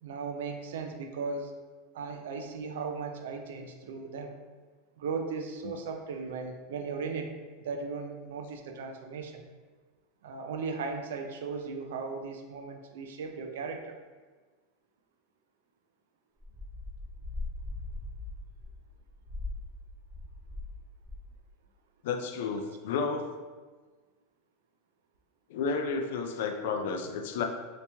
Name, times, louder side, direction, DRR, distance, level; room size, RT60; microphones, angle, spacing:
voice 1, 0.0-1.5 1.9-4.4 5.0-9.4 10.2-14.0, right 4 dB, 90° right, 4 dB, 0.4 m, -37 dB
sound 1, 16.4-20.7 21.0-21.4, left 2 dB, 10° right, 0.6 m, -40 dB
voice 2, 22.0-23.2 25.5-27.4, left 5 dB, 65° left, 5 dB, 0.4 m, -31 dB
2.9 x 2.8 x 3.4 m, 1.3 s
supercardioid pair, 165°, 0 cm